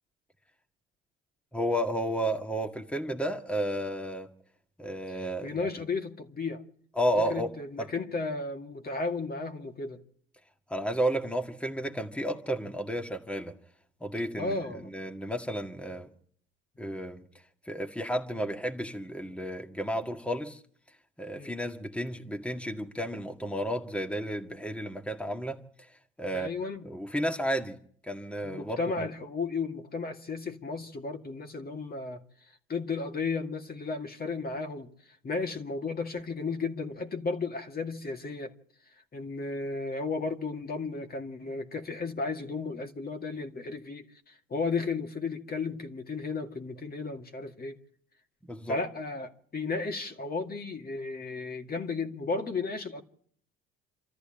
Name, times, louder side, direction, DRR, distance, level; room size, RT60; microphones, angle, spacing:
voice 1, 1.5-4.3 4.8-5.7 7.0-7.5 7.8-7.9 10.7-13.5 14.0-16.1 16.8-17.2 17.7-20.6 21.2-25.9 26.2-26.5 26.8-27.8 28.1-28.8 48.5-48.8, equal, 5° left, 1.9 m, -32 dB
voice 2, 5.4-6.6 7.2-10.0 14.4-14.9 21.4-21.5 26.3-26.9 28.4-32.2 32.7-34.9 35.2-38.5 39.1-47.8 48.7-53.0, left 4 dB, 30° left, 2.2 m, -34 dB
27.0 x 13.5 x 8.9 m
hypercardioid pair, 65°, 29 cm